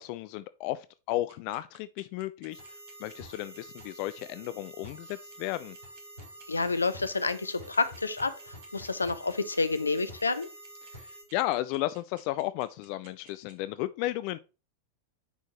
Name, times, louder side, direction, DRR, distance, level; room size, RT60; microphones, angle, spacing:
voice 1, 0.0-2.6 3.0-5.8 10.9-14.4, left 16 dB, 45° left, 0.3 m, -34 dB
sound 1, 1.3-13.5, right 7 dB, 50° right, 1.6 m, -56 dB
sound 2, 2.5-11.2, right 1 dB, 75° right, 4.6 m, -48 dB
voice 2, 6.5-10.5, left 3 dB, 80° left, 0.6 m, -29 dB
9.9 x 4.5 x 3.0 m
figure-of-eight pair, 90°, 0 cm